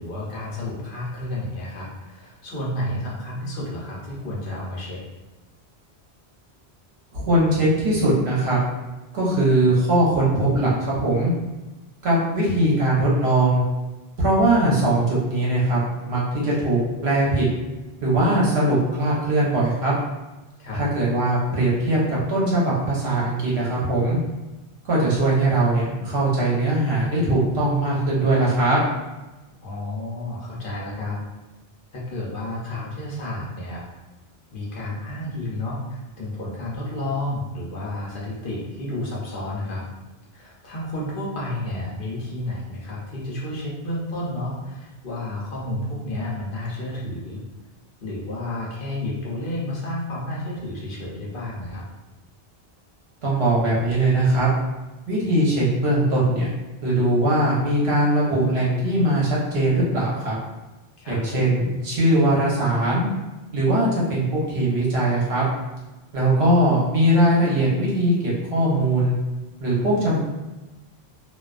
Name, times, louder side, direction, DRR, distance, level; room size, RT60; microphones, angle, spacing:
voice 1, 0.0-5.0 20.6-20.8 29.6-31.2 31.9-33.9 34.5-39.9 40.3-47.4 48.0-51.8 61.0-61.2, left 1 dB, 60° left, -5 dB, 0.8 m, -31 dB
voice 2, 7.1-8.6 9.1-11.3 12.0-13.6 14.2-15.8 16.1-17.4 18.0-19.9 20.7-24.2 24.9-28.8 53.2-54.5 55.1-56.5 56.8-60.3 61.1-63.1 63.5-65.4 66.1-69.1 69.6-70.2, right 1 dB, 75° right, -6 dB, 1.0 m, -20 dB
2.3 x 2.2 x 2.4 m, 1.1 s
omnidirectional pair, 1.1 m